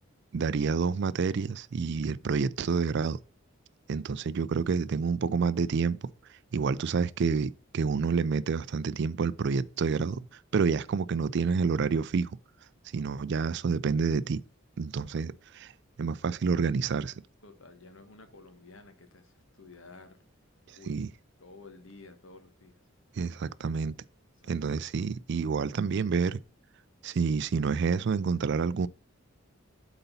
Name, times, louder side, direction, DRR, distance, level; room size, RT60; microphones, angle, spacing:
voice 1, 0.3-3.2 3.9-6.1 6.5-12.3 12.9-14.4 14.8-15.7 16.0-17.1 20.9-21.1 23.2-23.9 24.5-26.4 27.0-28.9, right 5 dB, 55° right, 0.4 m, -28 dB
voice 2, 17.4-20.2 20.7-21.0 21.4-22.8 24.4-24.5, left 3 dB, 70° left, 1.3 m, -52 dB
8.1 x 4.0 x 5.4 m
head